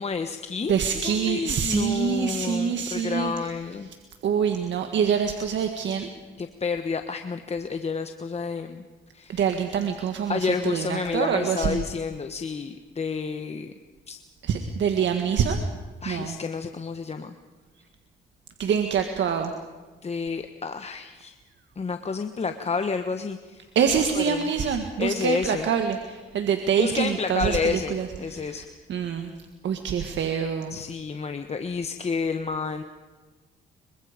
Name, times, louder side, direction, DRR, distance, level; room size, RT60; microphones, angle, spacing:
voice 1, 0.0-0.7 1.0-3.9 6.4-8.8 9.1-9.4 10.3-13.7 14.1-14.2 16.0-17.3 20.0-21.3 21.8-23.7 24.1-24.5 25.0-25.7 26.8-28.6 30.7-32.8, left 5 dB, 30° left, 7 dB, 1.3 m, -30 dB
voice 2, 0.7-3.3 4.2-6.1 9.3-11.8 14.4-15.7 16.1-16.3 18.6-19.5 23.8-28.6 28.9-29.3 29.6-30.8, right 7 dB, 65° right, 5 dB, 1.8 m, -25 dB
26.0 x 24.0 x 5.2 m, 1.3 s
cardioid pair, 90°, 20 cm